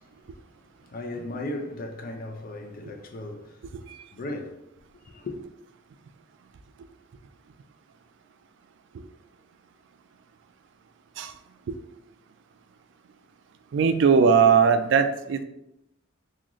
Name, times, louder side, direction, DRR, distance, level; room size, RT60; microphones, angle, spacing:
voice 1, 0.0-3.6 4.1-4.6 5.0-5.4, left 2 dB, 50° left, 0.5 m, -37 dB
voice 2, 13.7-15.4, right 6 dB, 65° right, 0.3 m, -20 dB
3.8 x 2.4 x 3.0 m
head